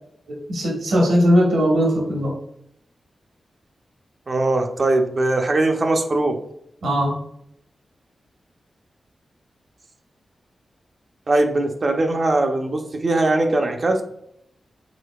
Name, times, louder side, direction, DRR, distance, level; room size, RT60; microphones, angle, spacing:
voice 1, 0.5-2.3 6.8-7.2, equal, 85° right, -1 dB, 1.3 m, -19 dB
voice 2, 4.3-6.4 11.3-14.0, right 2 dB, 55° right, 4 dB, 0.7 m, -20 dB
5.1 x 3.8 x 2.4 m, 0.75 s
cardioid pair, 50°, 0 cm